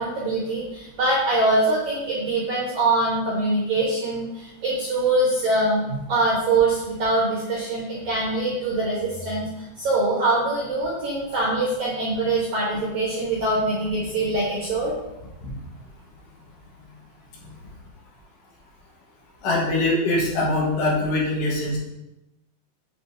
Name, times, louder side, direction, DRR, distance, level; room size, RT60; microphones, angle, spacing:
voice 1, 0.0-9.4 9.8-14.9, right 2 dB, 70° right, -5 dB, 1.8 m, -23 dB
voice 2, 19.4-21.8, left 2 dB, 75° left, -3 dB, 3.6 m, -23 dB
8.4 x 5.5 x 2.7 m, 0.97 s
omnidirectional pair, 5.1 m